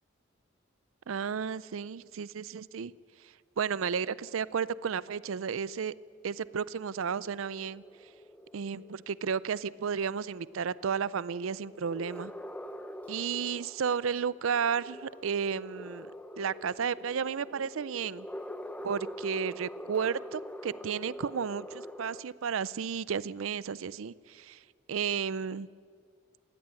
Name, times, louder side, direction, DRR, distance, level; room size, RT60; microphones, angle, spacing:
voice 1, 1.1-2.9 3.2-5.9 6.2-8.1 8.5-12.3 13.1-16.1 16.4-18.3 18.8-25.7, right 6 dB, 80° right, 20 dB, 0.5 m, -33 dB
sound 1, 4.8-22.2, equal, 5° left, 0.7 m, -45 dB
20.0 x 16.0 x 9.0 m, 2.1 s
head